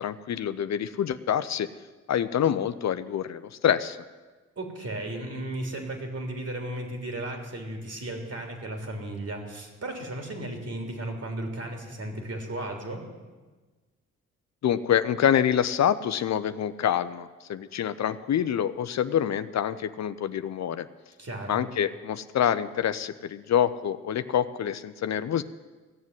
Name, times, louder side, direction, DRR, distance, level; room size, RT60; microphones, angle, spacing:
voice 1, 0.0-1.7 2.1-4.0 14.6-20.9 21.5-25.4, left 9 dB, 55° left, 12 dB, 0.7 m, -26 dB
voice 2, 4.6-13.0 21.2-21.6, right 1 dB, 50° right, 3 dB, 3.5 m, -35 dB
16.0 x 7.3 x 9.5 m, 1.3 s
hypercardioid pair, 45°, 33 cm